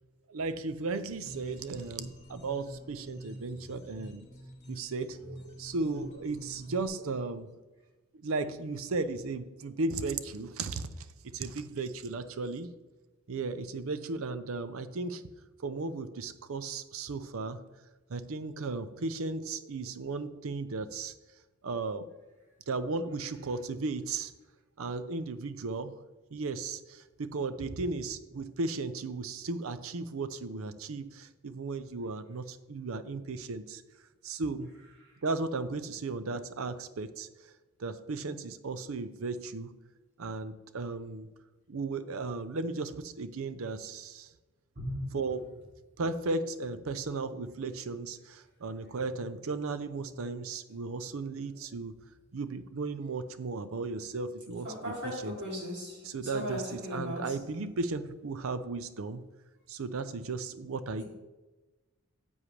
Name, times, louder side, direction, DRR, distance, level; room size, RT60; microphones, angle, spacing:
voice 1, 0.3-4.3 4.7-7.6 8.1-11.1 11.3-12.7 13.3-15.3 15.6-17.7 18.1-21.1 21.6-22.1 22.7-24.3 24.8-26.0 26.3-33.8 34.2-34.7 35.2-37.5 37.8-39.8 40.2-41.3 41.7-44.3 45.1-45.6 46.0-52.0 52.3-54.7 55.0-55.3 56.0-59.2 59.7-61.0, right 3 dB, 75° right, 13 dB, 0.5 m, -35 dB
sound 1, 1.2-6.9, equal, 35° left, 2.4 m, -47 dB
voice 2, 44.7-45.2 54.6-57.4 61.0-61.1, equal, 50° right, -3 dB, 2.9 m, -37 dB
10.0 x 7.2 x 3.2 m, 1.1 s
head